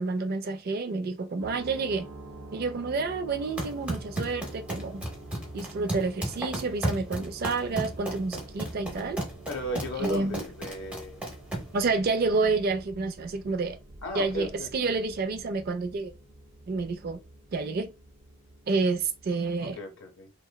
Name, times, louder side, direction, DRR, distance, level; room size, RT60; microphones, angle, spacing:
voice 1, 0.0-2.1 2.5-5.0 5.5-9.2 9.7-10.5 11.7-13.8 14.1-16.1 16.7-17.2 17.5-17.9 18.7-19.8, right 3 dB, 45° right, 0.3 m, -29 dB
sound 1, 1.4-19.7, right 1 dB, 85° right, 0.6 m, -47 dB
sound 2, 3.4-11.8, right 1 dB, 5° right, 0.6 m, -34 dB
voice 2, 9.5-11.2 14.0-14.9 19.6-20.3, left 1 dB, 55° left, 0.6 m, -36 dB
2.9 x 2.1 x 2.2 m
head